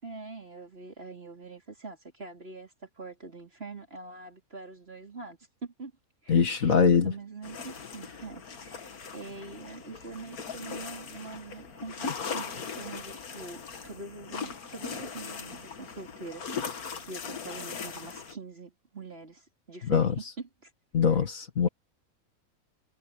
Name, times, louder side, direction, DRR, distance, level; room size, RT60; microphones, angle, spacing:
voice 1, 0.0-5.9 6.2-20.7, right 3 dB, 45° right, 4.6 m, -44 dB
voice 2, 6.3-7.1 19.8-20.2 20.9-21.7, left 6 dB, 65° left, 2.1 m, -23 dB
sound 1, 7.4-18.4, left 5 dB, 90° left, 2.1 m, -39 dB
omnidirectional pair, 1.5 m